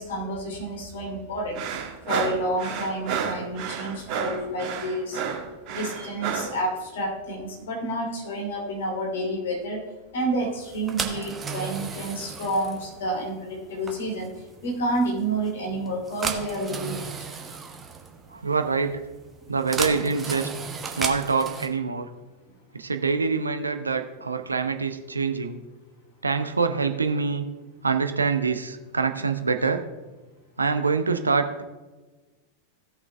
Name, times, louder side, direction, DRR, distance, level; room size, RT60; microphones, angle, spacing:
voice 1, 0.0-1.6 2.1-5.2 5.7-9.8 10.1-14.3 14.6-17.3, right 1 dB, 60° left, 0 dB, 2.9 m, -29 dB
sound 1, 1.6-6.6, right 7 dB, 40° right, 1.7 m, -31 dB
sound 2, 10.6-21.7, right 5 dB, 20° right, 1.2 m, -35 dB
voice 2, 18.3-19.0 19.5-20.5 21.0-22.1 22.7-25.6 26.2-27.4 27.8-29.8 30.6-31.6, right 4 dB, 80° right, 8 dB, 0.8 m, -25 dB
16.5 x 6.0 x 3.4 m, 1.2 s
figure-of-eight pair, 90°, 0 cm